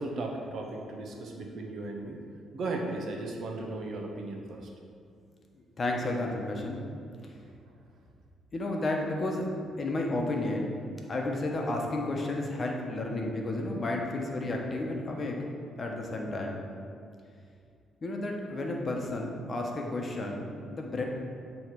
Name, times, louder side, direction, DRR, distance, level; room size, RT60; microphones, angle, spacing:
voice 1, 0.0-2.2 2.5-4.7, right 2 dB, 60° right, 1 dB, 0.9 m, -36 dB
voice 2, 5.8-6.8 8.5-9.4 9.8-10.7 11.1-15.4 15.8-16.6 18.0-21.0, left 2 dB, 40° left, 0 dB, 0.9 m, -32 dB
8.5 x 3.1 x 4.6 m, 2.3 s
cardioid pair, 90°, 0 cm